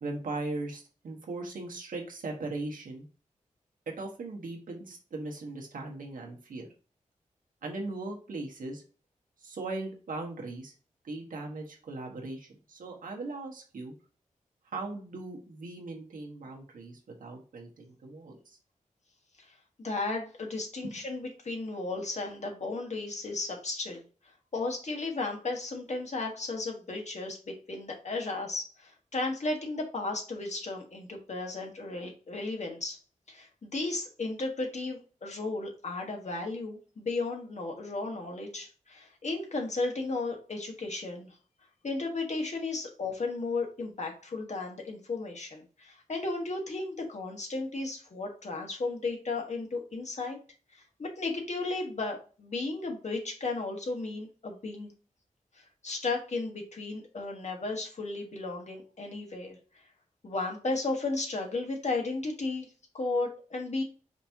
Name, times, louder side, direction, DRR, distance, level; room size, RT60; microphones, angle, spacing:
voice 1, 0.0-3.1 4.0-6.7 7.6-8.8 9.4-10.7 11.0-13.9 14.7-18.6 20.8-20.9, right 2 dB, 85° right, 0 dB, 1.2 m, -39 dB
voice 2, 19.8-24.0 24.5-33.0 33.3-41.3 41.8-50.4 50.7-54.9 55.5-59.6 60.2-62.7 62.9-63.8, left 3 dB, 60° left, 1 dB, 1.4 m, -34 dB
5.1 x 2.9 x 3.4 m, 0.37 s
cardioid pair, 60°, 14 cm